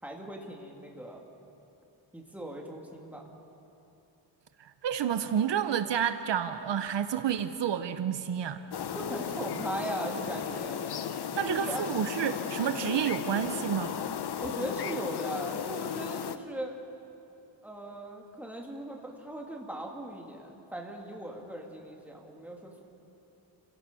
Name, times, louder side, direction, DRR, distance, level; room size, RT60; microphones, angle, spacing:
voice 1, 0.0-1.3 2.1-3.3 8.9-10.8 11.5-11.9 14.4-16.7 17.6-22.8, right 1 dB, 5° right, -1 dB, 2.7 m, -39 dB
voice 2, 4.6-8.7 11.3-14.0, right 9 dB, 70° right, 10 dB, 0.9 m, -30 dB
sound 1, 8.7-16.4, left 8 dB, 60° left, 1.0 m, -35 dB
29.0 x 17.0 x 7.0 m, 2.8 s
wide cardioid pair, 140°, 44 cm